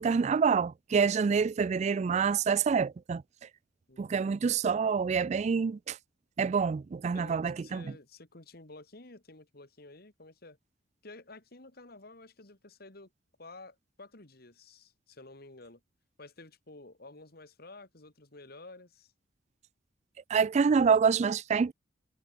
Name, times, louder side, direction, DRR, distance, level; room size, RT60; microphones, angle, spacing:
voice 1, 0.0-3.2 4.0-6.0 6.4-7.8 20.3-21.7, right 6 dB, 40° right, 0.3 m, -27 dB
voice 2, 3.9-4.2 7.1-10.6 11.0-13.1 13.4-15.8 16.2-19.1, left 2 dB, 55° left, 2.7 m, -51 dB
head